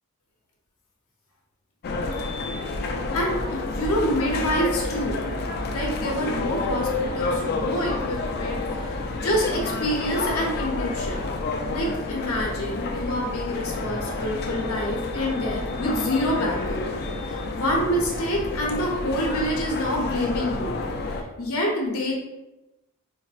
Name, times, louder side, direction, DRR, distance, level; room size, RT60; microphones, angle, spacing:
sound 1, 1.8-21.2, left 3 dB, 45° left, 0.3 m, -29 dB
voice 1, 3.1-5.2 5.7-11.3 11.7-16.8 17.2-20.7 21.1-22.1, equal, 65° left, -1 dB, 0.7 m, -27 dB
4.0 x 2.1 x 2.4 m, 0.97 s
head